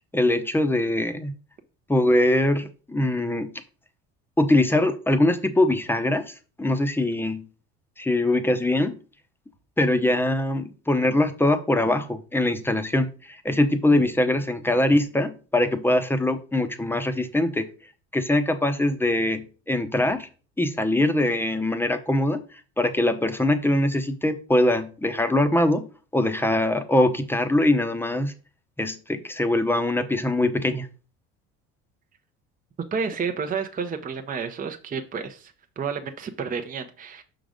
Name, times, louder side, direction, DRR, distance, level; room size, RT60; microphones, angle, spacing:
voice 1, 0.1-1.3 1.9-3.5 4.4-7.5 8.0-9.0 9.8-17.7 18.1-20.3 20.6-25.9 26.1-28.3 28.8-30.9, left 1 dB, 5° left, 8 dB, 0.9 m, -22 dB
voice 2, 32.9-37.2, right 5 dB, 25° right, 5 dB, 0.8 m, -30 dB
6.0 x 3.9 x 5.1 m, 0.36 s
supercardioid pair, 95°, 31 cm